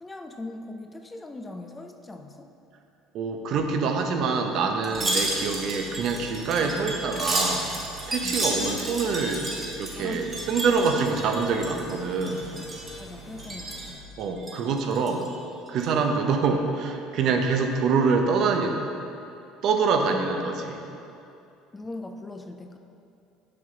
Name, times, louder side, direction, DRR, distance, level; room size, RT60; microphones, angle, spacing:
voice 1, 0.0-2.5 8.2-8.4 10.0-10.3 13.0-14.0 20.1-20.2 20.6-20.7 21.7-22.8, left 2 dB, 15° left, 5 dB, 0.4 m, -39 dB
voice 2, 3.1-7.7 8.1-9.5 9.8-12.5 14.2-15.3 15.7-18.8 19.6-20.8, right 4 dB, 60° right, 4 dB, 0.7 m, -25 dB
Wind chime, 4.8-11.9 12.2-13.0 13.4-13.9 14.4-15.3 15.7-15.8, right 1 dB, 25° right, 1.4 m, -31 dB
sound 1, 4.9-13.9, right 3 dB, 40° left, 1.4 m, -45 dB
6.7 x 5.5 x 3.9 m, 2.7 s
supercardioid pair, 95°, 0 cm